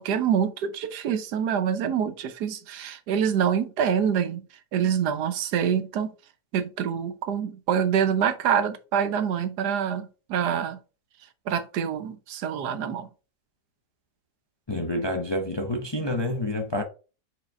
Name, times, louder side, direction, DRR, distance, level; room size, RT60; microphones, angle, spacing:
voice 1, 0.0-4.4 4.7-6.1 6.5-10.8 11.5-13.1, right 8 dB, 80° right, 1.4 m, -26 dB
voice 2, 14.7-16.8, left 1 dB, 30° left, 0.5 m, -28 dB
4.9 x 4.1 x 5.8 m
omnidirectional pair, 1.8 m